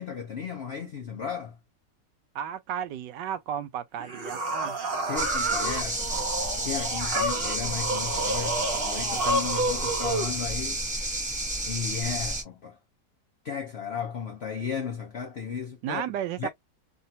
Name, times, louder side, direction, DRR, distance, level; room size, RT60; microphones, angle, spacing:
voice 1, 0.0-1.6 5.1-6.3 6.6-10.8 11.6-12.8 13.4-16.0 16.4-16.5, left 6 dB, 70° left, 0.5 m, -34 dB
voice 2, 2.3-4.8 15.8-16.5, right 9 dB, 85° right, 1.3 m, -33 dB
sound 1, 4.0-10.3, right 2 dB, 45° right, 0.8 m, -30 dB
sound 2, 5.2-12.4, right 1 dB, 5° right, 0.6 m, -31 dB
3.3 x 2.1 x 2.7 m
omnidirectional pair, 1.9 m